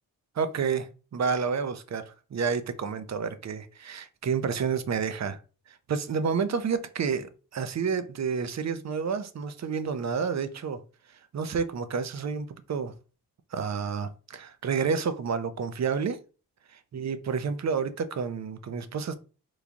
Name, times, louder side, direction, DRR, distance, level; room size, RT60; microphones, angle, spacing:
voice 1, 0.4-5.4 5.7-10.8 11.3-12.9 13.5-16.2 16.9-19.2, right 6 dB, 45° right, 0.5 m, -30 dB
3.1 x 2.3 x 3.8 m
cardioid pair, 60°, 39 cm